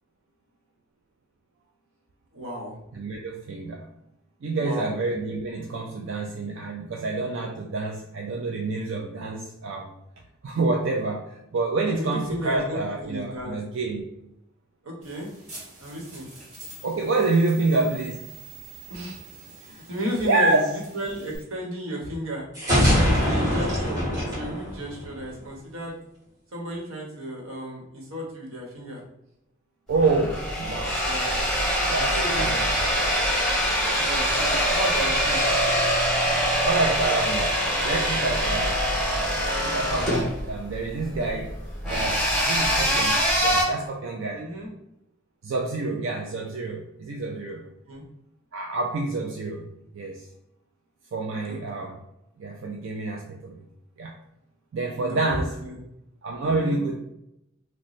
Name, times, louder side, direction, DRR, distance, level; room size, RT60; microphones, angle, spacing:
voice 1, 2.3-2.8 4.6-4.9 11.9-13.6 14.8-15.3 15.8-16.3 18.9-19.2 19.6-22.4 23.0-26.0 26.5-29.0 31.0-31.4 32.1-32.6 34.0-35.4 44.3-44.7 47.9-48.0 51.5-51.6 55.0-55.9 56.4-56.8, right 1 dB, 90° right, -2 dB, 1.1 m, -33 dB
voice 2, 2.9-3.9 4.4-9.9 10.4-14.0 16.8-18.3 20.2-20.7 29.9-31.0 31.9-32.7 33.4-34.1 35.1-35.2 36.6-37.5 37.8-38.8 39.6-41.5 41.8-44.5 45.4-47.6 48.5-49.7 49.9-50.3 51.1-52.0 52.4-53.6 54.0-54.2 54.7-55.6 56.2-56.9, right 3 dB, 65° right, 0 dB, 0.4 m, -28 dB
sound 1, 15.0-21.4, right 4 dB, 35° right, 1.0 m, -45 dB
sound 2, 22.5-25.4, equal, 15° right, 1.4 m, -23 dB
sound 3, 29.9-43.6, equal, ahead, 1.0 m, -24 dB
3.0 x 2.1 x 4.0 m, 0.83 s
head